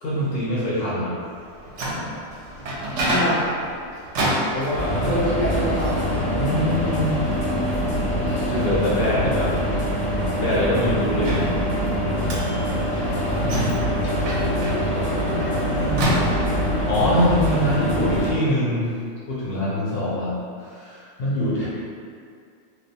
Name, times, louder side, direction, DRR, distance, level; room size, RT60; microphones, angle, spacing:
voice 1, 0.0-1.1 4.5-5.1 6.4-7.1 8.5-9.5 10.4-11.5 13.4-14.0 15.7-16.2 16.9-18.9 19.3-20.3 20.7-21.7, left 1 dB, 65° left, -8 dB, 0.6 m, -24 dB
Microwave oven, 1.4-16.8, right 1 dB, 70° right, 0.9 m, -30 dB
voice 2, 3.0-3.4 5.0-6.0 14.3-15.4, equal, 55° right, -11 dB, 0.5 m, -28 dB
sound 1, 4.7-18.3, equal, 85° left, 1.0 m, -24 dB
2.3 x 2.3 x 2.6 m, 2.3 s
omnidirectional pair, 1.3 m